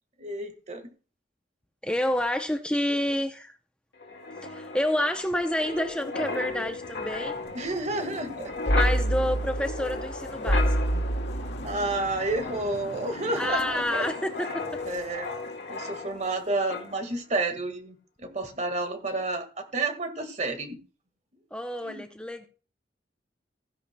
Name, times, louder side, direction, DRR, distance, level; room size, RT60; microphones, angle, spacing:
voice 1, 0.2-0.8 7.5-8.5 11.6-14.1 14.9-15.3 15.7-20.8 21.8-22.0, right 2 dB, 40° right, 7 dB, 1.7 m, -30 dB
voice 2, 1.8-3.5 4.5-7.4 8.7-11.0 13.4-14.5 21.5-22.5, left 1 dB, 5° left, 6 dB, 0.6 m, -29 dB
Wind, 4.0-16.4 16.7-16.9, left 1 dB, 80° left, 1.9 m, -31 dB
16.0 x 10.5 x 2.2 m, 0.36 s
head